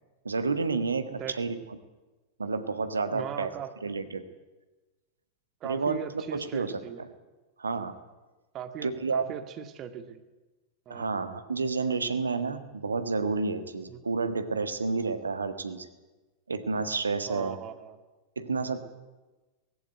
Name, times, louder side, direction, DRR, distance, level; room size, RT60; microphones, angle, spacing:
voice 1, 0.2-1.6 2.4-3.5 3.8-4.3 5.6-6.0 6.3-7.1 7.6-8.0 8.8-9.2 10.9-15.9 16.5-17.6 18.3-18.8, right 4 dB, 75° right, 10 dB, 1.6 m, -30 dB
voice 2, 3.1-3.7 5.6-7.1 8.5-10.2 10.9-11.1 13.9-14.0 17.3-18.0, right 9 dB, 35° right, 9 dB, 1.8 m, -39 dB
19.0 x 15.5 x 9.3 m, 1.2 s
figure-of-eight pair, 90°, 0 cm